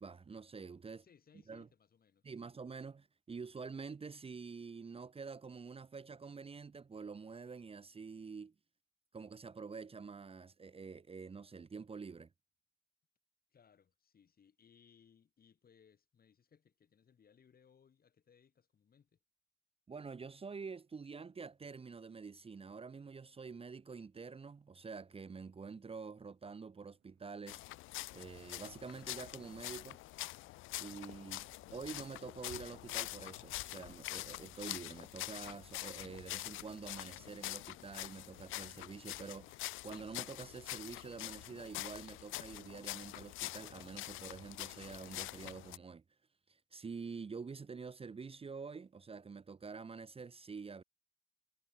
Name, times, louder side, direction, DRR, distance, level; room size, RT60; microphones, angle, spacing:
voice 1, 0.0-1.0 1.5-1.7 2.2-8.5 9.1-12.3 19.9-27.6 28.1-30.0 30.8-46.0 46.5-50.8, right 5 dB, 30° right, 1.0 m, -47 dB
voice 2, 1.0-2.5 13.5-19.2, left 7 dB, 50° left, 5.1 m, -67 dB
sound 1, 26.7-27.6 28.0-28.6 29.2-29.4 29.8-30.0 30.4-36.4 36.7-36.8 37.9-39.6, right 13 dB, 80° right, 2.7 m, -73 dB
sound 2, 27.5-45.8, left 18 dB, 85° left, 0.5 m, -45 dB
cardioid pair, 90°, 20 cm